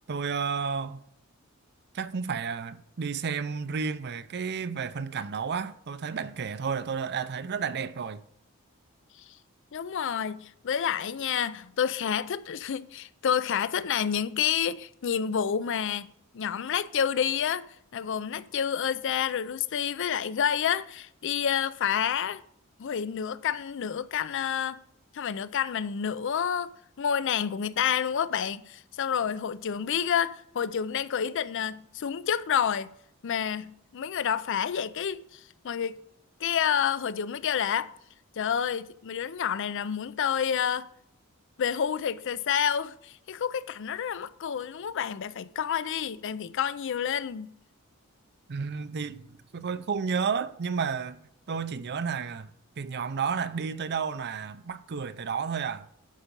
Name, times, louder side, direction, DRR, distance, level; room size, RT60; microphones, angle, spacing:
voice 1, 0.1-1.0 1.9-8.2 48.5-51.2 51.5-52.5 52.8-55.9, right 6 dB, 50° right, 0.5 m, -32 dB
voice 2, 9.7-16.1 16.3-17.7 17.9-22.4 22.8-24.8 25.1-26.7 27.0-32.9 33.2-36.0 36.4-37.9 38.4-40.9 41.6-47.5, left 8 dB, 60° left, 0.4 m, -29 dB
11.5 x 5.1 x 5.3 m
head